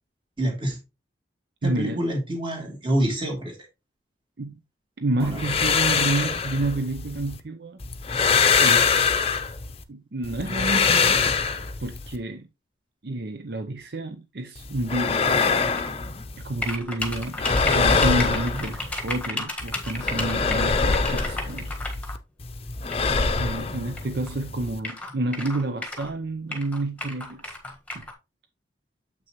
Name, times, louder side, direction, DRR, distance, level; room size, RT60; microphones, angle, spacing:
voice 1, 0.4-0.8 1.6-3.5 5.2-5.4 17.4-17.7, right 1 dB, 30° right, 2.7 m, -27 dB
voice 2, 1.6-2.0 4.4-4.6 5.0-7.8 8.6-9.1 9.9-11.4 11.8-12.5 13.0-15.5 16.4-17.4 17.7-21.7 23.4-28.1, right 2 dB, 60° right, 0.7 m, -29 dB
sound 1, 5.2-7.4 7.8-9.8 10.2-12.2 14.6-16.8 17.0-19.3 19.6-22.2 22.4-24.8, left 5 dB, 35° left, 0.7 m, -24 dB
sound 2, 15.6-15.9 16.6-22.1 22.9-23.0 24.0-24.1 24.3-24.4 24.8-26.1 26.5-28.1, left 2 dB, 10° left, 1.4 m, -33 dB
7.6 x 6.2 x 3.0 m
head